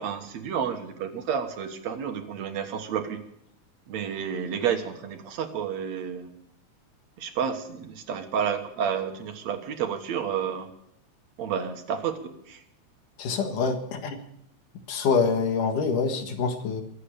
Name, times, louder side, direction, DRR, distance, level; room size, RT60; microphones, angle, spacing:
voice 1, 0.0-3.2 3.9-6.3 7.2-10.7 11.4-12.6, right 7 dB, 65° right, 7 dB, 2.4 m, -30 dB
voice 2, 13.2-14.2 14.9-16.8, left 5 dB, 85° left, 5 dB, 3.3 m, -25 dB
23.5 x 8.5 x 6.9 m, 0.75 s
omnidirectional pair, 3.5 m